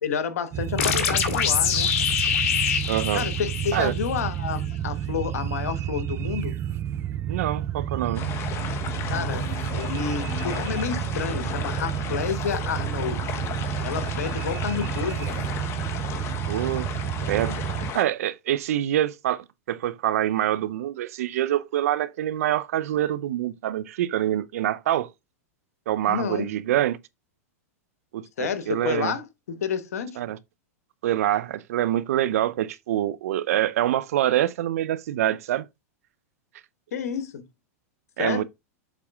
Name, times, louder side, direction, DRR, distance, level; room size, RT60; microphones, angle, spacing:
voice 1, 0.0-1.9 3.1-6.6 9.1-13.3 13.8-15.5 26.1-26.5 28.4-30.2 36.9-37.4 38.2-38.4, left 7 dB, 80° left, 1.2 m, -30 dB
sound 1, 0.5-17.9, right 10 dB, 30° right, 0.5 m, -30 dB
sound 2, 0.8-4.3, left 8 dB, 60° left, 2.0 m, -25 dB
voice 2, 2.9-3.3 3.7-3.9 7.3-8.2 16.5-16.9 17.2-17.6 17.9-25.1 25.9-27.0 28.1-29.1 30.2-30.4 31.0-35.7 38.2-38.4, right 12 dB, 70° right, 0.7 m, -25 dB
sound 3, 8.1-18.0, left 8 dB, 35° left, 1.1 m, -34 dB
7.4 x 4.2 x 3.6 m
hypercardioid pair, 120°, 8 cm